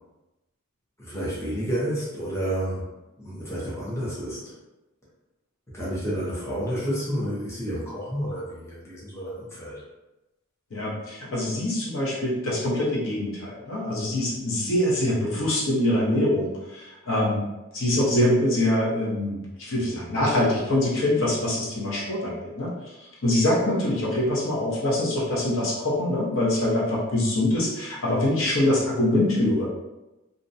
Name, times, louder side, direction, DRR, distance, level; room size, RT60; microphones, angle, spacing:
voice 1, 1.0-2.9 3.2-4.5 5.7-9.8, equal, 15° left, -8 dB, 0.6 m, -30 dB
voice 2, 10.7-17.4 17.7-22.9 23.2-29.7, left 1 dB, 65° left, -5 dB, 0.8 m, -24 dB
2.5 x 2.1 x 2.6 m, 1.0 s
head